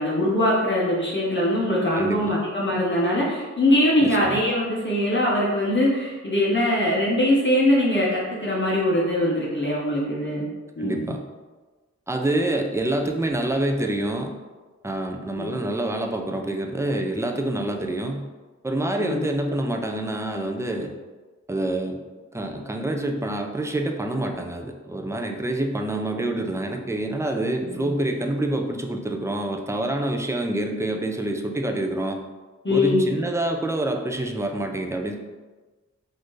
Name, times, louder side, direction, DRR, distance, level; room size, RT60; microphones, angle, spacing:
voice 1, 0.0-10.5 10.8-11.1 15.4-15.5 19.0-19.2 27.6-27.9 32.6-33.0, left 1 dB, 40° left, -5 dB, 0.9 m, -22 dB
voice 2, 2.0-2.4 4.0-4.4 10.8-11.2 12.1-14.3 14.8-18.3 18.6-20.9 21.5-22.0 22.3-32.2 32.7-35.2, right 1 dB, 10° right, 3 dB, 0.4 m, -27 dB
4.1 x 2.6 x 3.1 m, 1.3 s
wide cardioid pair, 60°, 29 cm